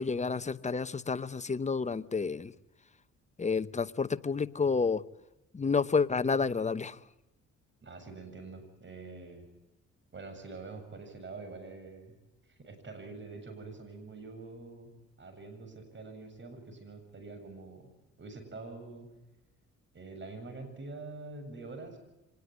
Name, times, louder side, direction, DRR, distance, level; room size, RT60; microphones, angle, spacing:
voice 1, 0.0-2.5 3.4-5.0 5.5-7.0, left 5 dB, 25° left, 13 dB, 1.0 m, -30 dB
voice 2, 7.8-9.5 10.1-12.1 12.6-14.9 15.2-17.9 18.2-19.1 19.9-22.0, right 3 dB, 40° right, 7 dB, 7.5 m, -45 dB
25.0 x 20.0 x 9.4 m, 0.96 s
cardioid pair, 90°, 30 cm